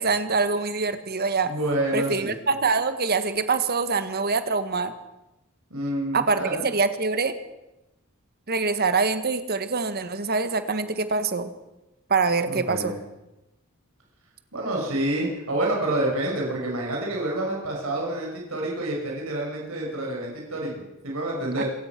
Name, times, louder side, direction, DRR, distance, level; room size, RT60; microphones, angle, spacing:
voice 1, 0.0-1.5 1.9-4.9 6.1-7.3 8.5-11.5 12.1-12.9 21.6-21.7, right 4 dB, 50° right, 10 dB, 1.6 m, -24 dB
voice 2, 1.4-2.3 5.7-6.7 12.4-12.9 14.5-21.6, right 1 dB, 80° right, -1 dB, 5.9 m, -28 dB
27.0 x 16.0 x 6.1 m, 0.96 s
head